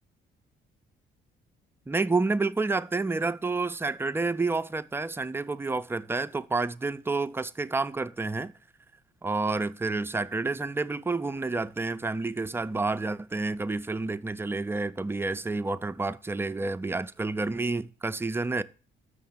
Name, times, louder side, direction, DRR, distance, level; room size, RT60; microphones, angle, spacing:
voice 1, 1.9-8.5 9.2-18.6, right 3 dB, 10° right, 0.3 m, -29 dB
6.5 x 5.6 x 7.2 m
cardioid pair, 90°, 20 cm